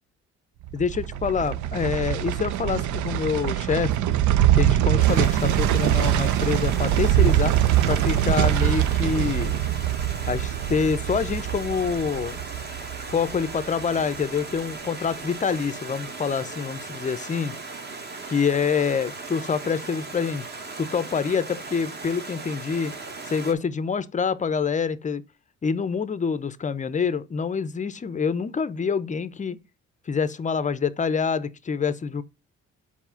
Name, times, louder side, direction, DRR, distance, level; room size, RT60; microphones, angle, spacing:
sound 1, 0.6-13.8 14.1-14.2, right 12 dB, 75° right, 0.5 m, -23 dB
voice 1, 0.7-4.1 4.5-7.5 7.9-9.6 10.3-12.4 13.1-17.5 18.3-20.5 20.8-22.9 23.2-25.2 25.6-29.6 30.1-32.2, left 6 dB, 25° left, 0.5 m, -26 dB
Stream, 5.0-23.5, right 3 dB, 35° right, 1.3 m, -38 dB
4.6 x 4.2 x 5.6 m
cardioid pair, 90°, 30 cm